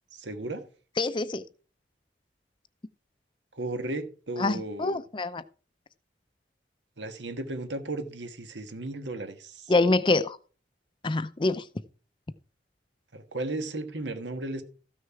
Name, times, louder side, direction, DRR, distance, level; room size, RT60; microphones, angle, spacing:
voice 1, 0.1-0.6 3.5-5.0 7.0-9.7 13.1-14.6, right 2 dB, 80° right, 1.5 m, -35 dB
voice 2, 1.0-1.4 4.4-5.4 9.7-10.4 11.0-11.6, left 2 dB, 25° left, 0.5 m, -25 dB
14.0 x 6.4 x 4.7 m
head